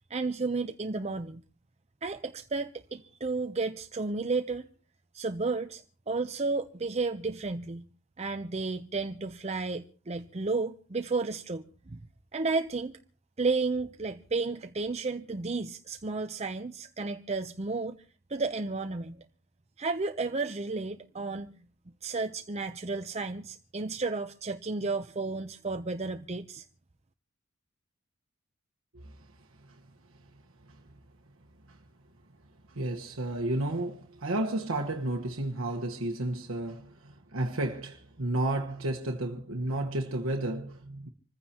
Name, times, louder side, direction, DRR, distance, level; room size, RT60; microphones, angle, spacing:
voice 1, 0.1-1.4 2.0-4.7 5.1-7.9 8.2-12.0 12.3-12.9 13.4-18.0 18.3-19.2 19.8-21.5 22.0-26.6, right 3 dB, 30° right, 0.7 m, -32 dB
voice 2, 32.7-41.1, right 1 dB, 90° right, 1.4 m, -32 dB
26.5 x 15.0 x 2.9 m
head